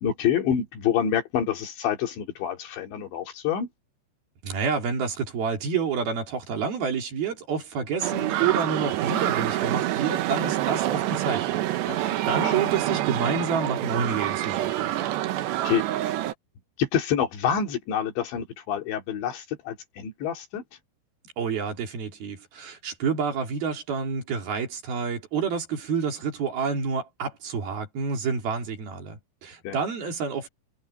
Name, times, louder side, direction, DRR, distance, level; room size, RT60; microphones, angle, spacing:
voice 1, 0.0-3.7 11.9-12.2 12.4-12.5 15.7-15.9 16.8-20.6 29.6-29.8, left 8 dB, 75° left, 5.0 m, -27 dB
voice 2, 4.4-14.9 21.4-30.5, right 5 dB, 55° right, 5.0 m, -29 dB
sound 1, 8.0-16.3, right 14 dB, 75° right, 3.3 m, -27 dB
omnidirectional pair, 5.3 m